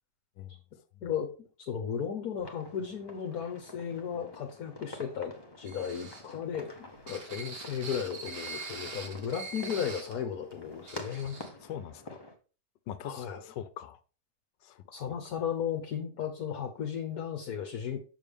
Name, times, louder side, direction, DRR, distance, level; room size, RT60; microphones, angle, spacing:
voice 1, 1.6-6.7 7.1-11.4 13.0-13.4 14.9-18.0, left 8 dB, 60° left, 4 dB, 1.3 m, -35 dB
sound 1, 2.4-12.4, left 1 dB, 20° left, 0.7 m, -49 dB
sound 2, 5.6-10.2 10.5-10.6 10.9-11.5, right 3 dB, 75° right, 2.2 m, -43 dB
voice 2, 11.6-12.2 12.9-14.0 14.6-15.1, left 10 dB, 90° left, 14 dB, 1.4 m, -43 dB
6.8 x 6.1 x 3.5 m, 0.36 s
omnidirectional pair, 1.9 m